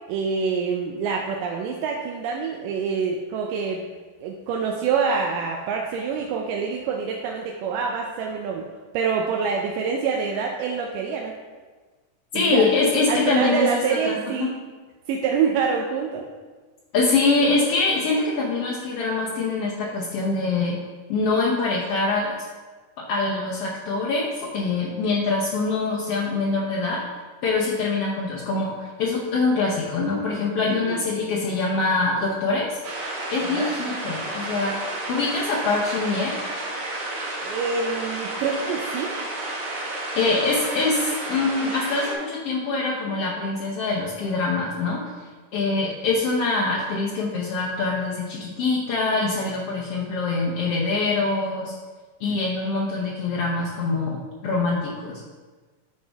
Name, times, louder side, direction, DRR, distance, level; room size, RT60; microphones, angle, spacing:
voice 1, 0.1-3.8 4.2-8.7 8.9-11.4 12.3-12.7 13.1-14.5 15.1-16.3 30.9-31.0 33.5-33.7 37.4-39.1, right 5 dB, 85° right, 0 dB, 2.2 m, -26 dB
voice 2, 12.3-14.5 16.9-20.8 21.1-22.4 23.0-27.0 27.4-32.8 33.3-36.3 40.1-45.0 45.5-51.7 52.2-55.2, left 3 dB, 80° left, -5 dB, 1.3 m, -24 dB
sound 1, 32.8-42.1, right 2 dB, 55° right, 1.7 m, -31 dB
9.5 x 4.4 x 3.4 m, 1.4 s
omnidirectional pair, 3.8 m